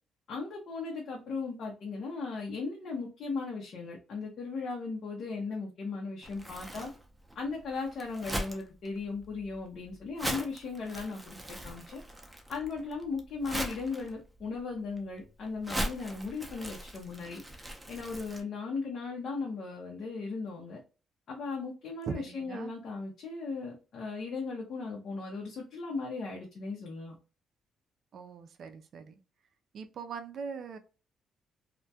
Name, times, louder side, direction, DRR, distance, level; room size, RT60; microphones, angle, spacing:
voice 1, 0.3-6.9 7.3-12.0 12.5-17.4 17.9-20.8 21.3-27.1, left 4 dB, 65° left, -1 dB, 0.6 m, -37 dB
Crumpling crinkling, 6.2-18.4, right 1 dB, 10° right, 0.5 m, -40 dB
voice 2, 22.1-22.7 28.1-29.2 29.7-30.8, right 5 dB, 60° right, 8 dB, 0.4 m, -41 dB
2.2 x 2.1 x 2.7 m, 0.33 s
cardioid pair, 90°, 0 cm